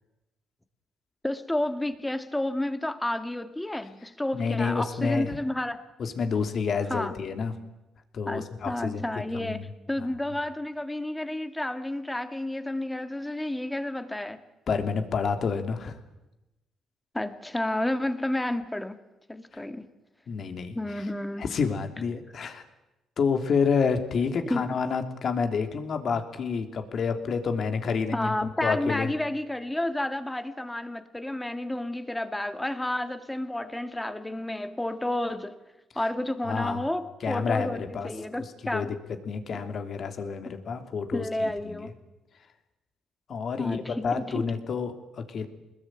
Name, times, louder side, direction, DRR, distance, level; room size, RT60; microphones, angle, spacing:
voice 1, 1.2-5.8 6.9-7.2 8.3-14.4 17.1-19.0 19.3-19.9 20.7-21.5 24.5-24.7 28.1-35.6 36.0-38.9 41.1-41.9 43.6-44.5, left 1 dB, 10° left, 2.0 m, -31 dB
voice 2, 4.3-5.3 6.0-7.5 8.1-9.0 9.3-9.6 10.0-10.1 14.7-16.0 19.5-19.7 20.3-20.7 21.4-22.6 23.2-29.1 36.4-36.8 37.2-38.1 38.4-38.5 38.7-38.9 39.3-41.8 43.3-45.5, left 5 dB, 55° left, 3.0 m, -29 dB
25.0 x 21.0 x 9.2 m
cardioid pair, 90°, 0 cm